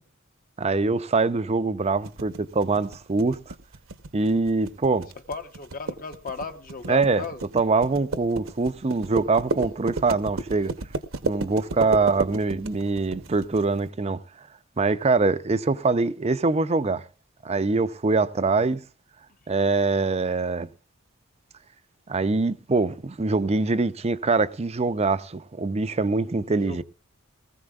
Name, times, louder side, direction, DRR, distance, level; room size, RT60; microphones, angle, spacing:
voice 1, 0.6-3.5 4.1-5.1 6.9-7.2 7.5-10.7 11.2-14.2 14.8-17.0 17.4-18.8 19.5-20.7 22.1-26.8, right 3 dB, 30° right, 0.6 m, -23 dB
sound 1, 2.0-13.6, right 3 dB, 70° right, 1.0 m, -32 dB
voice 2, 5.3-7.4 26.6-26.8, left 4 dB, 40° left, 1.0 m, -35 dB
19.5 x 15.0 x 2.4 m
head